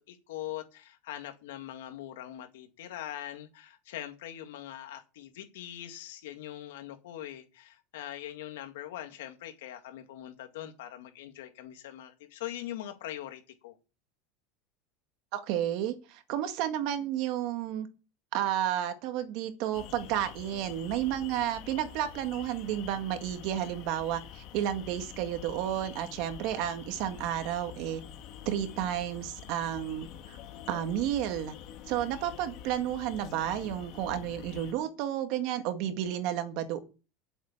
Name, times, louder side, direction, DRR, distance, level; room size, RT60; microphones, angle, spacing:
voice 1, 0.1-13.8, left 12 dB, 85° left, 2.1 m, -42 dB
voice 2, 15.3-17.9 18.3-28.0 28.5-30.4 30.7-31.5 31.9-36.8, right 11 dB, 55° right, 1.9 m, -32 dB
sound 1, 19.7-34.7, left 10 dB, 50° left, 1.8 m, -46 dB
8.4 x 7.3 x 8.7 m
supercardioid pair, 150°, 0 cm